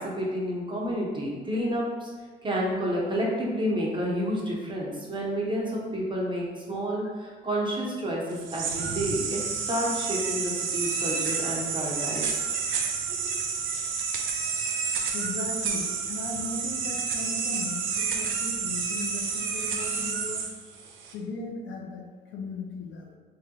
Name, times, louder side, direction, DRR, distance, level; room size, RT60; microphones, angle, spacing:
voice 1, 0.0-2.1 2.4-9.4 9.7-12.3 13.1-13.4, equal, 25° right, -4 dB, 0.8 m, -30 dB
sound 1, 8.3-21.1, right 5 dB, 85° right, 0.4 m, -30 dB
voice 2, 15.1-20.5 21.1-23.2, left 3 dB, 75° left, 1 dB, 0.5 m, -37 dB
3.3 x 2.3 x 2.8 m, 1.5 s
cardioid pair, 90°, 20 cm